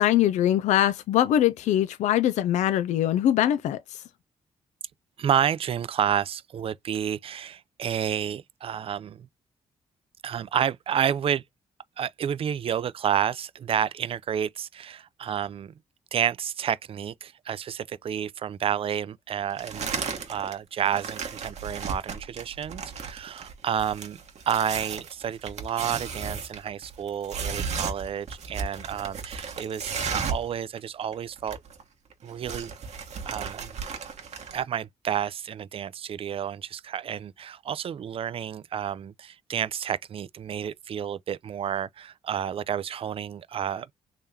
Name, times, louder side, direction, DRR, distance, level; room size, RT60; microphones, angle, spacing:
voice 1, 0.0-4.0, left 12 dB, 75° left, 0.4 m, -22 dB
voice 2, 5.2-9.3 10.2-11.4 12.0-15.7 16.1-24.2 24.5-31.6 32.2-32.7 33.3-33.8 34.5-43.9, right 9 dB, 50° right, 0.4 m, -30 dB
sound 1, 19.6-20.5 20.8-30.5 30.8-30.9 31.1-31.8 32.1-34.6, right 5 dB, 65° right, 1.2 m, -34 dB
3.7 x 3.2 x 2.7 m
supercardioid pair, 60°, 12 cm